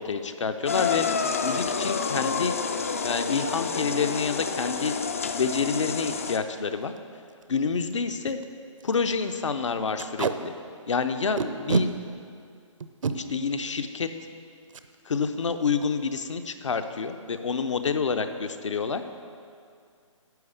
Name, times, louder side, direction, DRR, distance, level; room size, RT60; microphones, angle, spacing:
voice 1, 0.0-2.5 3.0-4.9 5.4-6.9 7.5-8.4 8.8-10.5 10.9-11.9 13.1-14.1 15.1-19.0, left 5 dB, 65° left, 8 dB, 0.8 m, -28 dB
sound 1, 0.7-6.4, left 5 dB, 25° left, 0.3 m, -29 dB
Packing tape duct tape, 6.3-6.5 7.0-7.1 7.3-7.4 7.9-8.0 8.3-8.4 8.8-9.0 10.0-10.3 11.4-11.9 12.8-13.1 14.7-14.9 15.2-15.4 15.7-16.1, right 4 dB, 70° right, 0.7 m, -27 dB
10.5 x 7.1 x 6.7 m, 2.3 s
hypercardioid pair, 170°, 17 cm